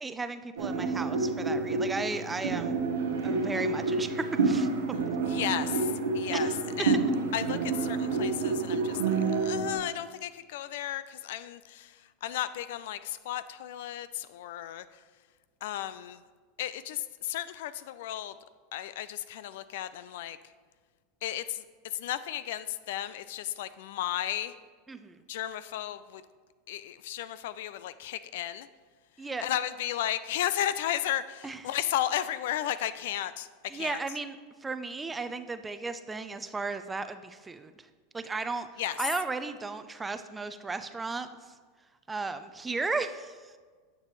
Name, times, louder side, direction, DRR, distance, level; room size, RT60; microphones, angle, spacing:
voice 1, 0.0-2.8 3.2-5.0 6.3-6.5 24.9-25.2 29.2-29.5 31.4-31.6 33.7-34.4 34.6-37.7 38.1-38.7 39.0-41.3 42.1-43.6, right 3 dB, 15° right, 10 dB, 0.5 m, -35 dB
sound 1, 0.6-9.7, right 4 dB, 85° right, 1.0 m, -29 dB
voice 2, 5.2-6.5 6.8-7.0 7.3-14.8 15.6-16.2 16.6-18.3 18.7-20.4 21.2-21.6 21.9-24.5 25.3-26.2 26.7-28.7 29.4-33.5 33.7-34.0 38.8-39.0, left 12 dB, 70° left, 14 dB, 0.3 m, -34 dB
9.5 x 6.8 x 3.1 m, 1.5 s
hypercardioid pair, 105°, 0 cm